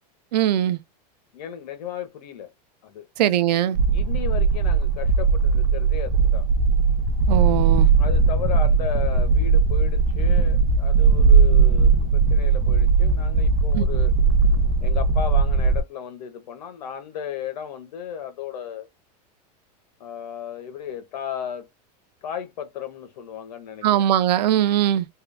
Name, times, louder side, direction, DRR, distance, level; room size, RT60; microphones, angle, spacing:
voice 1, 0.3-0.8 3.2-3.8 7.3-7.9 13.7-13.9 23.8-25.1, right 11 dB, 80° right, 0.6 m, -20 dB
voice 2, 1.3-2.5 2.8-3.1 3.9-6.5 8.0-14.1 14.8-18.9 20.0-21.7 22.2-24.1, left 9 dB, 75° left, 1.4 m, -35 dB
sound 1, 3.7-15.8, right 4 dB, 40° right, 0.8 m, -19 dB
3.6 x 2.4 x 3.4 m
supercardioid pair, 155°, 21 cm